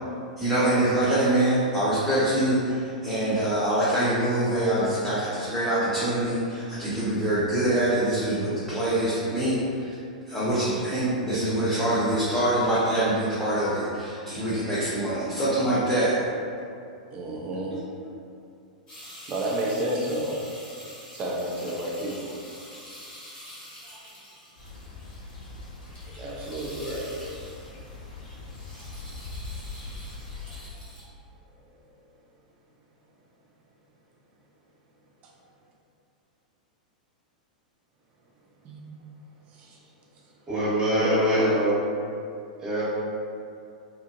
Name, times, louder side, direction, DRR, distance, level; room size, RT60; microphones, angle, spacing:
voice 1, 0.4-9.9 10.3-16.2, right 1 dB, 5° left, -11 dB, 0.6 m, -24 dB
voice 2, 17.1-17.7 19.0-20.4 21.1-22.4 23.8-24.1 26.0-27.1 28.7-28.9 30.5-30.6 35.2-35.3 38.6-38.8 39.5-39.8 40.9-41.7, right 1 dB, 35° right, -3 dB, 0.4 m, -30 dB
sound 1, 18.9-27.9 28.2-31.0, equal, 30° left, 1.2 m, -46 dB
sound 2, 24.6-30.7, left 3 dB, 75° left, 0.7 m, -41 dB
voice 3, 40.5-41.5 42.6-42.8, equal, 15° right, -9 dB, 1.0 m, -24 dB
2.8 x 2.5 x 2.5 m, 2.4 s
figure-of-eight pair, 100°, 4 cm